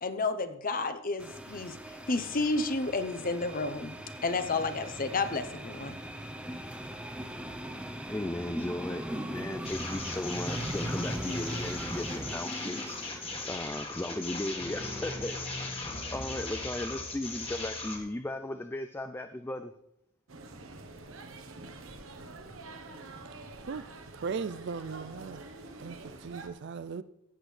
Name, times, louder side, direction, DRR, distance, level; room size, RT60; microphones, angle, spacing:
voice 1, 0.0-1.8 2.1-3.9 4.2-6.0, left 3 dB, 45° left, 10 dB, 0.8 m, -31 dB
sound 1, 1.2-13.6, equal, 5° right, 0.7 m, -40 dB
voice 2, 8.1-19.7, left 1 dB, 10° left, 8 dB, 0.4 m, -37 dB
sound 2, 9.6-18.0, left 2 dB, 25° left, 1.7 m, -37 dB
sound 3, 20.3-26.5, right 3 dB, 75° right, 1.1 m, -46 dB
voice 3, 24.2-25.5 25.8-27.0, right 5 dB, 55° right, 15 dB, 0.4 m, -37 dB
15.5 x 8.1 x 3.3 m, 0.79 s
head